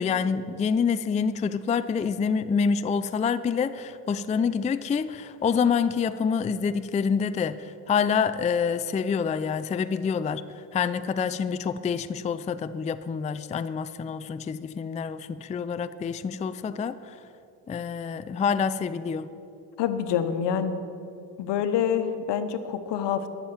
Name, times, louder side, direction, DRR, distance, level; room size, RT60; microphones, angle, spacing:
voice 1, 0.0-10.4 10.7-17.1 17.7-19.3, left 6 dB, 15° left, 12 dB, 0.4 m, -27 dB
voice 2, 19.8-20.8 21.4-23.3, left 8 dB, 70° left, 9 dB, 1.1 m, -26 dB
12.0 x 7.3 x 9.2 m, 2.8 s
supercardioid pair, 80°, 44 cm